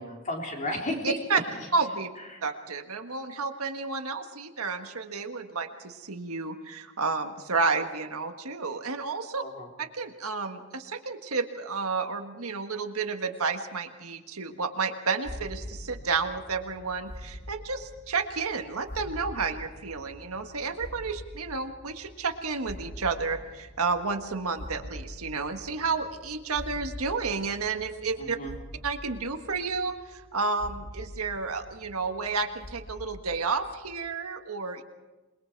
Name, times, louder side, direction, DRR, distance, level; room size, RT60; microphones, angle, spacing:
voice 1, 0.0-1.2 2.3-2.4 9.4-9.7 28.2-28.5, left 1 dB, 35° left, 0 dB, 3.8 m, -33 dB
voice 2, 1.0-1.4 1.7-2.1 2.4-9.4 9.8-28.4 28.8-34.8, right 4 dB, 85° right, 6 dB, 1.6 m, -31 dB
sound 1, 15.2-34.1, left 1 dB, 50° left, 2.2 m, -44 dB
27.5 x 21.0 x 4.7 m, 1.2 s
head